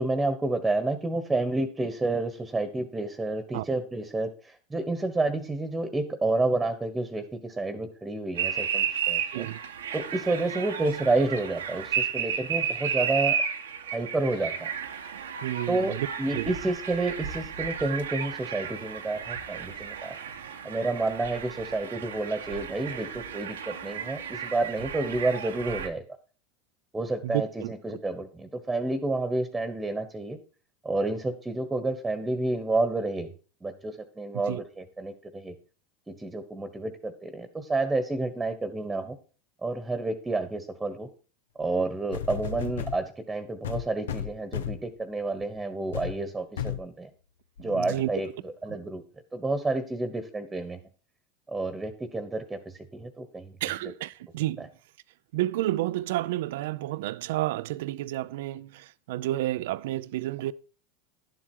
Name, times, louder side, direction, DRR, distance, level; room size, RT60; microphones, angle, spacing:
voice 1, 0.0-9.5 9.9-13.4 13.9-14.7 15.7-20.1 20.6-26.0 26.9-30.4 30.8-33.3 33.6-35.5 36.1-39.2 39.6-41.1 41.6-47.1 47.6-49.0 49.3-50.8 51.5-53.6 53.8-53.9 54.6-54.7, right 2 dB, 10° right, 1.4 m, -30 dB
sound 1, 8.3-25.9, right 7 dB, 90° right, 1.2 m, -33 dB
voice 2, 15.4-16.1 16.3-16.5 27.2-27.7 34.5-34.6 47.7-48.1 53.6-54.6 55.3-58.7 59.1-60.5, right 15 dB, 70° right, 0.5 m, -30 dB
sound 2, 41.6-41.7 42.1-43.0 43.6-44.9 45.4-45.6 45.9-46.2 46.6-46.9 47.6-47.7, left 9 dB, 80° left, 0.7 m, -33 dB
11.0 x 7.6 x 4.6 m
hypercardioid pair, 95°, 0 cm